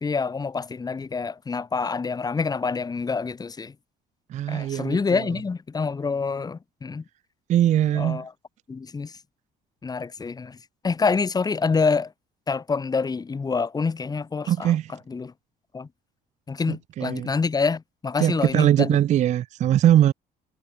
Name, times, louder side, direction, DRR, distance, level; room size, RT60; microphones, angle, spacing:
voice 1, 0.0-3.7 4.5-7.0 7.9-8.3 8.7-9.2 9.8-10.6 10.8-12.1 12.5-15.3 15.7-15.9 16.5-19.0, left 4 dB, 25° left, 1.3 m, -27 dB
voice 2, 4.3-5.0 7.5-8.2 14.5-14.9 16.7-17.3 18.2-20.1, right 11 dB, 45° right, 0.4 m, -21 dB
cardioid pair, 110°, 17 cm